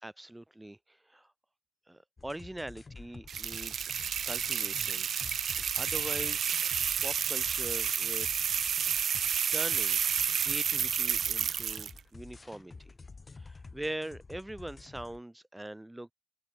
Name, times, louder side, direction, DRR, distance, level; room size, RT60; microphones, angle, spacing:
voice 1, 0.0-1.3 1.9-3.9 4.2-5.1 5.4-6.5 7.0-8.7 9.5-12.9 13.3-16.1, right 1 dB, 5° right, 1.4 m, -42 dB
sound 1, 2.2-15.2, left 4 dB, 20° left, 1.1 m, -50 dB
sound 2, 3.3-12.0, right 8 dB, 45° right, 0.8 m, -30 dB
open air
cardioid pair, 110°, 0 cm